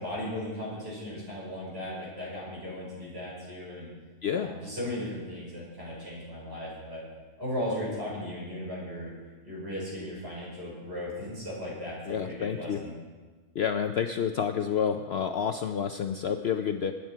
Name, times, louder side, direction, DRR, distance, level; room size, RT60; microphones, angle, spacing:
voice 1, 0.0-3.9 4.3-7.0 7.4-9.1 9.4-12.9, left 1 dB, 45° right, -6 dB, 5.9 m, -36 dB
voice 2, 12.1-12.8 13.5-16.9, left 7 dB, 60° left, 7 dB, 0.7 m, -29 dB
19.5 x 9.6 x 4.7 m, 1.4 s
omnidirectional pair, 1.4 m